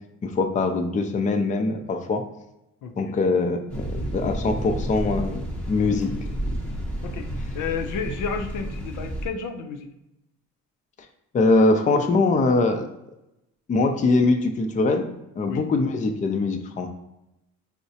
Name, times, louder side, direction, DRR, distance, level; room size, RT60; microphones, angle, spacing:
voice 1, 0.2-2.2 3.0-6.1 11.3-12.9 13.7-15.1 15.4-16.9, left 3 dB, 25° left, 5 dB, 0.4 m, -22 dB
voice 2, 2.8-3.3 7.0-7.3 7.5-9.9 15.5-15.6, left 6 dB, 85° left, 5 dB, 0.5 m, -31 dB
sound 1, 3.7-9.3, right 1 dB, 5° left, 0.8 m, -31 dB
4.6 x 2.1 x 2.7 m, 0.90 s
cardioid pair, 90°, 30 cm